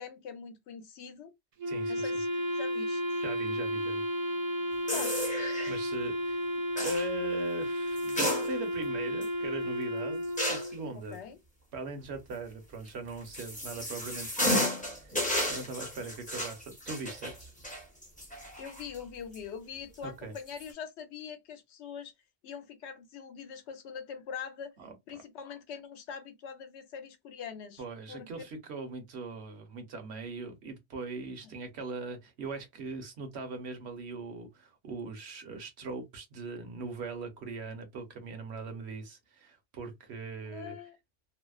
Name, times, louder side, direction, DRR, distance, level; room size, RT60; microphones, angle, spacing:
voice 1, 0.0-1.3 1.9-3.0 4.9-5.2 10.9-11.4 18.6-22.1 22.4-24.7 25.1-28.3 40.5-41.0, left 7 dB, 75° left, 0.9 m, -43 dB
Wind instrument woodwind instrument, 1.6-10.9, equal, 50° right, 0.6 m, -33 dB
voice 2, 1.7-2.1 3.2-4.0 5.7-6.4 6.8-11.2 11.7-17.5 20.0-20.3 24.8-25.2 27.8-40.8, right 3 dB, 65° right, 1.0 m, -40 dB
sound 1, 4.9-5.8 6.8-7.1 8.0-8.8 9.2-9.3 10.4-10.8 12.9-19.0 19.3-19.4 20.4-20.7, left 1 dB, 10° left, 0.5 m, -33 dB
2.7 x 2.0 x 2.3 m
omnidirectional pair, 1.2 m